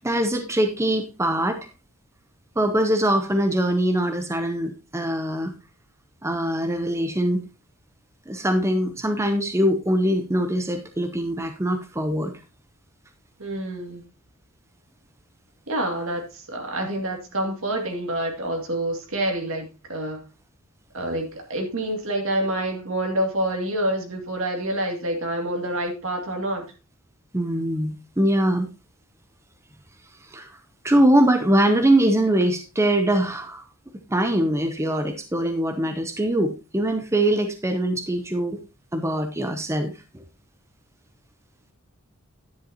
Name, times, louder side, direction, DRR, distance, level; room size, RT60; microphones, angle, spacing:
voice 1, 0.0-1.6 2.6-5.5 6.2-7.4 8.3-12.3 27.3-28.7 30.2-30.6 30.8-33.6 34.1-38.6 38.9-40.2, right 1 dB, 15° right, 0.7 m, -22 dB
voice 2, 13.4-14.1 15.7-20.2 20.9-26.7, right 1 dB, 65° right, 2.4 m, -27 dB
10.5 x 9.9 x 2.9 m
head